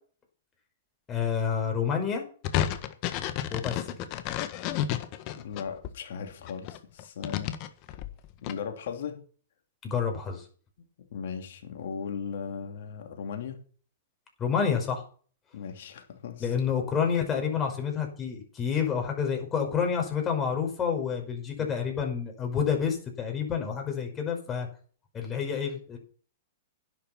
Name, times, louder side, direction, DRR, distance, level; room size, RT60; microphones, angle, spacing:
voice 1, 1.1-2.2 3.5-3.8 9.8-10.4 14.4-15.0 16.4-24.7 25.1-26.0, left 7 dB, 25° left, 3 dB, 5.6 m, -28 dB
sound 1, 2.4-5.9 6.4-8.5, left 11 dB, 45° left, 1.6 m, -31 dB
voice 2, 5.4-7.5 7.9-8.0 8.4-9.2 11.1-13.6 15.5-16.5 21.6-21.7, left 6 dB, 65° left, 5 dB, 2.9 m, -37 dB
11.0 x 10.5 x 6.0 m, 0.43 s
hypercardioid pair, 115°, 0 cm